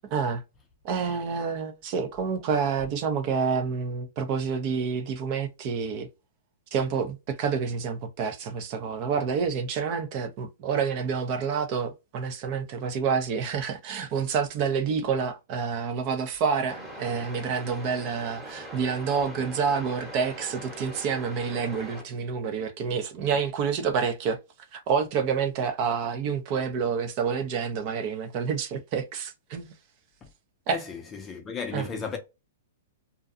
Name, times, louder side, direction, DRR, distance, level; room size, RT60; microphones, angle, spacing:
voice 1, 0.0-0.4 0.8-6.1 6.7-24.4 24.7-29.7 30.7-30.8 31.7-31.9, right 6 dB, 40° right, 0.6 m, -28 dB
sound 1, 16.7-22.0, right 1 dB, 5° right, 1.1 m, -42 dB
voice 2, 30.7-32.2, left 5 dB, 20° left, 0.5 m, -34 dB
2.5 x 2.2 x 2.5 m
hypercardioid pair, 135°, 0 cm